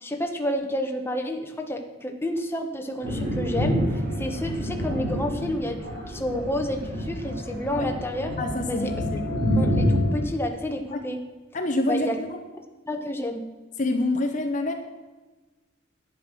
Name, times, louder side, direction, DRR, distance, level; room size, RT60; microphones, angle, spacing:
voice 1, 0.0-8.3 8.7-8.9 9.6-11.2 11.9-12.2 12.9-13.5, left 1 dB, 10° left, 3 dB, 1.1 m, -30 dB
Thunder, 3.0-10.3, equal, 50° right, 4.6 m, -27 dB
voice 2, 8.4-9.2 10.9-11.0 11.5-12.4 13.8-14.7, left 1 dB, 40° left, 5 dB, 0.8 m, -27 dB
10.5 x 9.3 x 6.1 m, 1.3 s
head